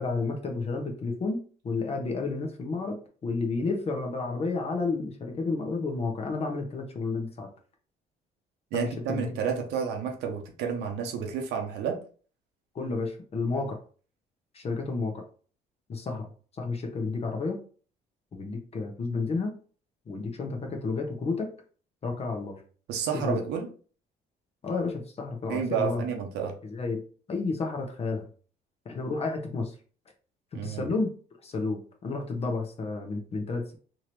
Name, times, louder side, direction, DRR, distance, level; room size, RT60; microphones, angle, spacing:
voice 1, 0.0-7.5 8.7-9.3 12.7-13.8 14.5-15.2 15.9-16.3 16.6-17.6 18.3-19.5 20.1-21.5 22.0-22.6 23.1-23.4 24.6-26.0 26.6-27.0 27.3-28.3 28.8-29.7 30.6-31.1 31.4-33.7, left 3 dB, 35° left, 3 dB, 1.0 m, -31 dB
voice 2, 8.7-12.0 22.9-23.7 25.5-26.5 30.5-30.9, right 7 dB, 85° right, 3 dB, 1.0 m, -30 dB
3.7 x 3.0 x 3.1 m, 0.41 s
cardioid pair, 110°, 17 cm